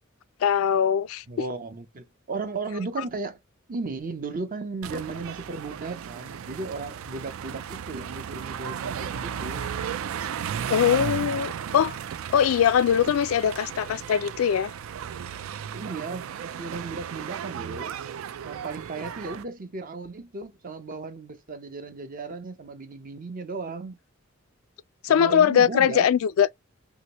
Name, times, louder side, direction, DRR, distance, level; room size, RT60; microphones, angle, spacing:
voice 1, 0.4-1.2 10.7-11.9 12.3-14.7 25.0-26.5, left 8 dB, 80° left, 0.3 m, -21 dB
voice 2, 1.3-3.4 3.7-9.6 15.7-17.9 18.4-24.0 25.1-26.1, right 3 dB, 40° right, 0.6 m, -35 dB
sound 1, 4.8-19.4, right 8 dB, 80° right, 0.3 m, -35 dB
3.0 x 2.8 x 2.9 m
head